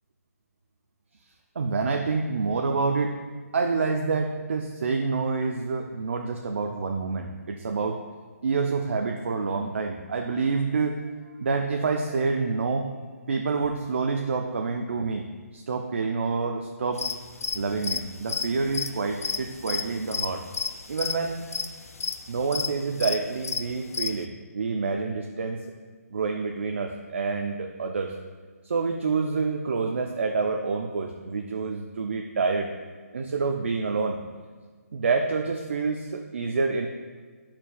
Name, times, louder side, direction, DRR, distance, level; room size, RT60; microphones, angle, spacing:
voice 1, 1.6-3.2 3.5-8.0 8.4-12.9 13.3-17.1 17.5-20.5 20.9-21.4 22.3-24.3 24.5-25.6 26.1-28.2 28.6-32.7 33.1-34.2 34.9-36.9, right 4 dB, 50° right, 4 dB, 0.4 m, -27 dB
sound 1, 17.0-24.2, left 5 dB, 65° left, 0.4 m, -31 dB
11.0 x 4.3 x 2.2 m, 1.5 s
hypercardioid pair, 175°, 9 cm